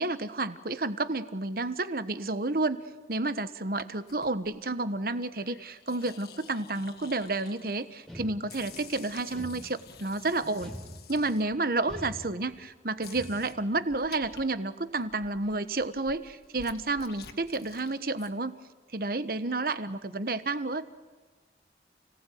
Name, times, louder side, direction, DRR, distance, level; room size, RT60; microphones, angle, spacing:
voice 1, 0.0-2.8 3.1-10.7 11.1-18.5 18.9-20.9, right 2 dB, 55° right, 12 dB, 1.3 m, -30 dB
sound 1, 4.1-4.6 5.3-8.0 8.5-12.0 12.5-12.6 13.0-14.4 14.8-18.3, left 5 dB, 60° left, 2.2 m, -50 dB
sound 2, 8.1-8.8 9.3-10.1 10.6-11.4 11.9-12.7 13.1-13.7, equal, ahead, 3.6 m, -44 dB
30.0 x 18.5 x 9.4 m, 1.3 s
head